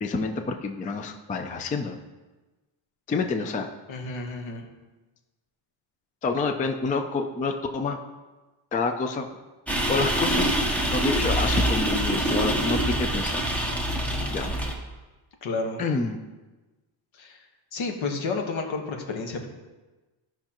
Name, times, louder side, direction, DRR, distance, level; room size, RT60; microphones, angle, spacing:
voice 1, 0.0-2.0 3.1-3.7 6.2-8.0 8.7-9.3 9.9-10.5 10.9-13.5 14.3-14.6 15.8-16.2, left 4 dB, 20° left, 6 dB, 0.3 m, -28 dB
voice 2, 3.9-4.7 15.4-15.8 17.1-17.4 17.7-19.5, left 3 dB, 75° left, 3 dB, 1.5 m, -31 dB
sound 1, 9.7-14.7, right 1 dB, 5° left, 0.9 m, -25 dB
14.5 x 5.7 x 2.9 m, 1.2 s
cardioid pair, 165°, 47 cm